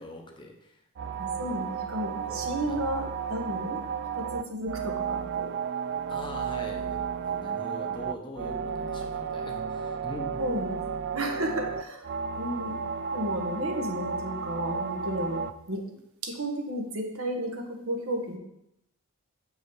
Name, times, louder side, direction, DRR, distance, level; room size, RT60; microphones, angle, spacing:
voice 1, 0.0-1.2 2.3-2.8 6.1-10.4 15.9-16.0, left 1 dB, 20° left, 2 dB, 0.9 m, -43 dB
sound 1, 1.0-15.5, right 6 dB, 50° right, 0.3 m, -33 dB
voice 2, 1.2-3.8 4.1-5.5 10.4-10.8 11.1-12.1 12.4-12.7 13.1-15.8 16.2-18.4, equal, 65° right, 2 dB, 1.3 m, -33 dB
7.1 x 5.5 x 4.8 m, 0.83 s
head